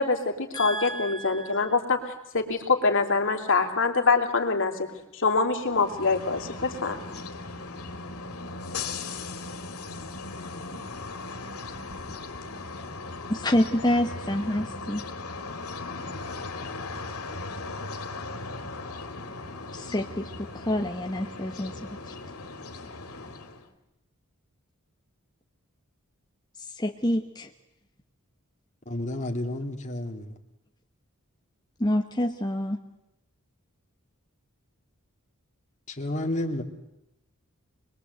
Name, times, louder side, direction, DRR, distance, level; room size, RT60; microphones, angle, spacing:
voice 1, 0.0-2.0 2.3-4.9 5.1-7.0, left 4 dB, 60° left, 3.1 m, -24 dB
voice 2, 0.5-1.7 13.3-15.0 19.7-21.7 22.1-22.2 26.8-27.5 31.8-32.8, left 1 dB, 20° left, 1.2 m, -27 dB
sound 1, 5.6-23.7, left 3 dB, 85° left, 2.6 m, -38 dB
voice 3, 28.9-30.4 35.9-36.6, left 1 dB, 35° left, 2.6 m, -31 dB
25.0 x 21.5 x 8.1 m
head